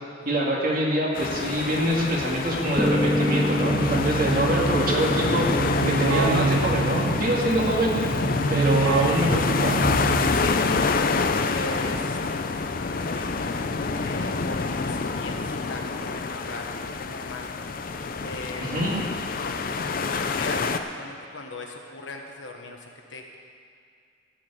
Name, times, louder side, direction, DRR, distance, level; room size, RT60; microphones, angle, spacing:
voice 1, 0.3-5.5 5.9-7.9 8.5-9.7 18.6-18.9, right 1 dB, 45° right, -3 dB, 2.1 m, -25 dB
sound 1, 1.1-20.8, left 4 dB, 45° left, 0.5 m, -27 dB
Piano, 2.8-10.8, equal, 5° right, 0.6 m, -29 dB
Keyboard (musical), 3.7-10.5, right 4 dB, 85° right, 0.4 m, -28 dB
voice 2, 10.3-10.6 11.4-12.2 12.8-17.5 18.2-18.8 20.0-23.4, left 2 dB, 70° left, 1 dB, 1.3 m, -39 dB
14.5 x 5.0 x 8.8 m, 2.4 s
head